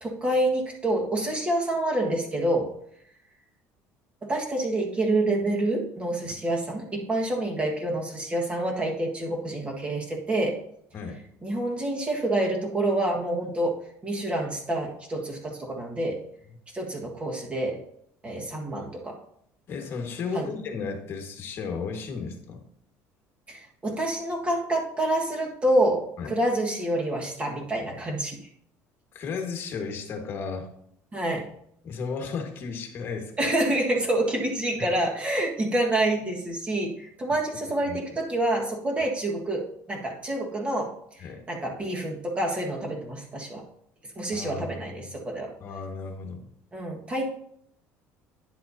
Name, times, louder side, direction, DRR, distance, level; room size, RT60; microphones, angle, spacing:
voice 1, 0.0-2.7 4.2-10.6 11.4-16.2 16.7-17.8 18.2-19.2 20.3-20.5 23.5-28.4 31.1-31.5 33.4-40.9 41.5-43.6 44.2-45.5 46.7-47.3, right 1 dB, 20° right, 0 dB, 1.6 m, -27 dB
voice 2, 19.7-22.6 26.2-26.4 29.1-30.7 31.8-33.5 34.8-34.9 37.9-38.0 41.2-41.4 44.3-45.2 45.6-46.4, left 5 dB, 40° left, 3 dB, 1.6 m, -34 dB
10.0 x 7.7 x 2.8 m, 0.71 s
cardioid pair, 140°, 6 cm